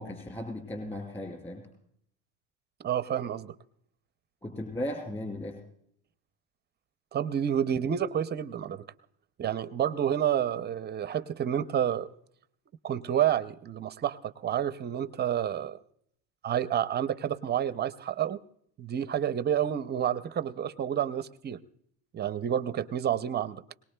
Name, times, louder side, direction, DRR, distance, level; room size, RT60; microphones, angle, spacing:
voice 1, 0.0-1.6 4.4-5.6, left 1 dB, 15° left, 4 dB, 4.7 m, -36 dB
voice 2, 2.8-3.5 7.1-8.8 9.4-12.1 12.8-15.8 16.4-18.4 18.8-21.6 22.1-23.6, right 9 dB, 25° right, 13 dB, 0.5 m, -29 dB
21.5 x 19.0 x 2.2 m, 0.70 s
cardioid pair, 135°, 41 cm